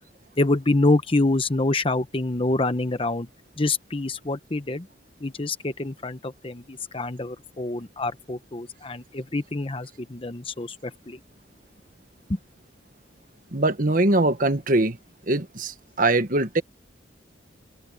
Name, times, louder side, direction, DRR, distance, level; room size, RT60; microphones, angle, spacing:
voice 1, 0.4-3.3 3.6-4.9 5.2-11.2 12.3-12.4, left 2 dB, 30° left, 0.9 m, -26 dB
voice 2, 13.5-15.0 15.3-16.6, right 2 dB, 45° right, 1.5 m, -22 dB
head